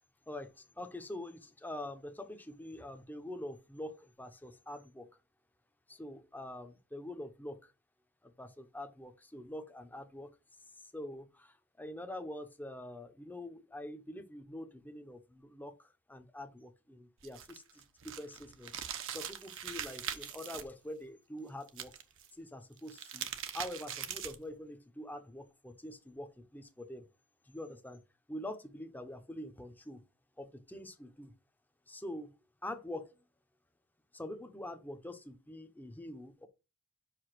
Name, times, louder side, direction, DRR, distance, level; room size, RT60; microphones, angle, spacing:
voice 1, 0.3-5.1 5.9-7.7 8.2-10.3 10.9-21.9 22.3-23.3 23.5-27.0 27.5-28.0 28.3-30.0 30.4-31.3 31.9-32.3 32.6-33.1 34.1-36.5, left 1 dB, 10° left, 0.7 m, -45 dB
sound 1, 17.2-20.6 21.7-22.3 22.8-24.5, right 9 dB, 60° right, 0.8 m, -42 dB
5.5 x 5.0 x 5.9 m
head